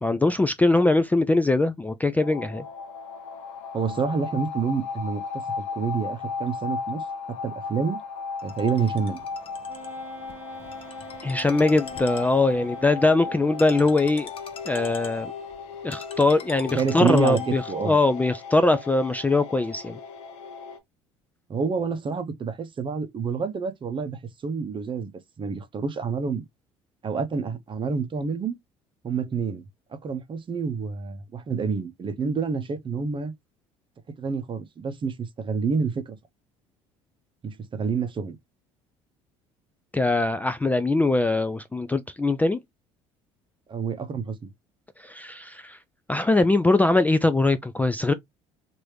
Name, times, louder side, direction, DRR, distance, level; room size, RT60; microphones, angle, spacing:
voice 1, 0.0-2.6 11.2-14.3 14.7-15.3 15.8-20.0 39.9-42.6 45.0-45.8 46.1-48.1, left 2 dB, 10° left, 0.3 m, -22 dB
sound 1, 2.2-20.8, left 5 dB, 80° left, 0.8 m, -36 dB
voice 2, 3.7-7.0 7.4-8.0 8.4-9.2 16.7-18.0 21.5-25.1 25.4-26.4 27.0-28.6 29.0-29.6 30.0-33.3 34.2-36.2 37.4-38.4 43.7-44.5, right 5 dB, 35° right, 0.7 m, -28 dB
Ringtone, 8.4-18.0, left 6 dB, 40° left, 0.8 m, -41 dB
Wind instrument woodwind instrument, 9.7-14.3, right 3 dB, 10° right, 1.1 m, -46 dB
3.1 x 2.6 x 3.0 m
hypercardioid pair, 70°, 15 cm